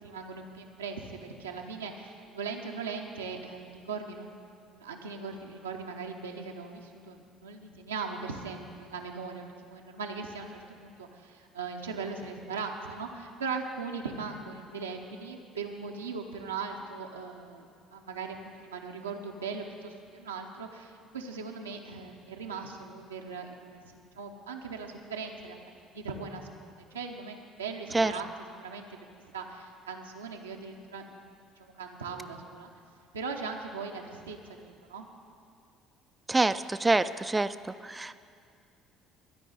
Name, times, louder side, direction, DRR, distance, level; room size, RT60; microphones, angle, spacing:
voice 1, 0.0-25.6 25.9-29.0 29.3-31.2 31.6-32.7 33.1-35.0, right 4 dB, 80° right, 1 dB, 0.7 m, -39 dB
voice 2, 36.3-37.5 37.8-38.2, right 2 dB, 15° right, 13 dB, 0.4 m, -26 dB
13.0 x 5.3 x 8.9 m, 2.3 s
figure-of-eight pair, 55°, 0 cm